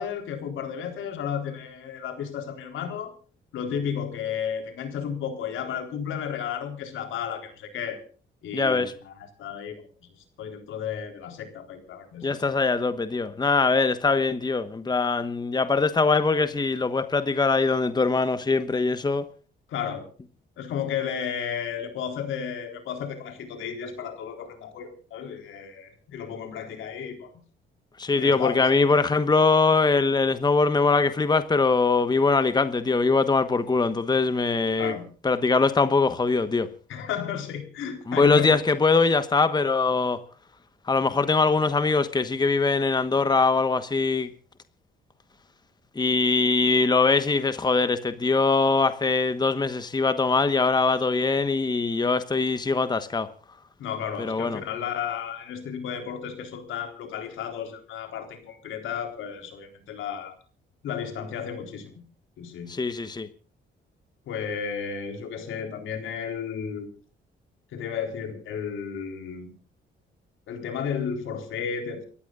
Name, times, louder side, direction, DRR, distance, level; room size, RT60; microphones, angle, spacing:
voice 1, 0.0-3.1 3.5-8.0 8.4-9.8 10.4-12.5 19.7-20.1 20.6-27.3 28.2-29.1 34.8-35.1 36.9-38.5 53.8-60.3 60.8-62.0 62.4-62.7 64.3-66.9 67.7-69.5 70.5-72.1, left 7 dB, 80° left, 3.9 m, -33 dB
voice 2, 8.5-8.9 12.2-19.3 28.0-34.9 35.2-36.7 38.1-40.2 40.9-44.3 46.0-53.3 54.2-54.6 62.7-63.3, left 4 dB, 20° left, 1.2 m, -22 dB
29.5 x 14.5 x 2.5 m
cardioid pair, 90°, 20 cm